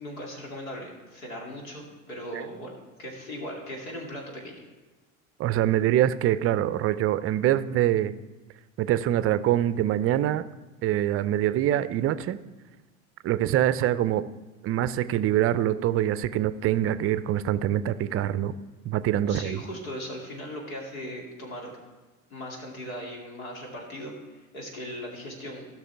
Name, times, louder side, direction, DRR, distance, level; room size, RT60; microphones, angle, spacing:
voice 1, 0.0-2.7 3.0-4.6 19.3-21.7 22.3-25.7, equal, 80° left, 0 dB, 2.6 m, -38 dB
voice 2, 5.4-8.1 8.8-10.5 10.8-12.4 13.2-14.2 14.6-18.5 18.9-19.6, right 12 dB, 35° right, 14 dB, 0.5 m, -24 dB
17.0 x 6.0 x 3.4 m, 1.3 s
hypercardioid pair, 80°, 40 cm